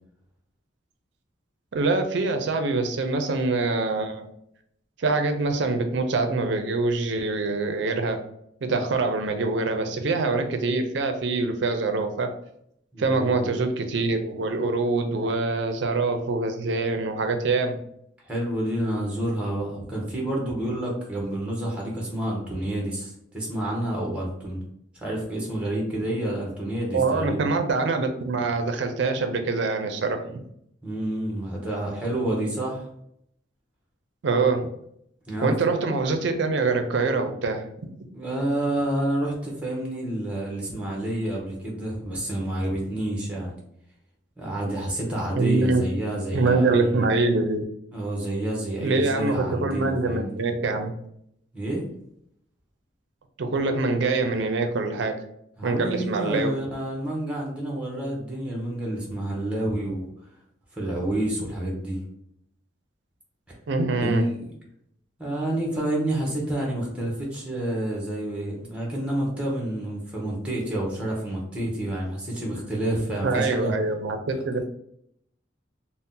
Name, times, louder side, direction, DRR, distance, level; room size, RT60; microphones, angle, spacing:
voice 1, 1.7-4.3 5.0-8.2 8.6-12.3 13.0-17.8 26.9-30.4 34.2-34.7 35.4-37.6 45.4-45.8 46.3-47.6 48.8-50.9 53.4-55.1 55.6-56.5 63.7-64.2 73.2-74.6, right 3 dB, 65° right, 5 dB, 0.4 m, -24 dB
voice 2, 12.9-13.5 18.2-24.6 25.0-27.4 30.8-32.9 35.3-35.5 38.1-43.5 44.4-47.1 47.9-50.4 51.5-51.8 55.6-60.1 60.7-62.0 64.0-64.5 65.2-73.7 74.3-74.4, right 1 dB, 5° right, -2 dB, 0.7 m, -29 dB
2.7 x 2.0 x 3.6 m, 0.72 s
head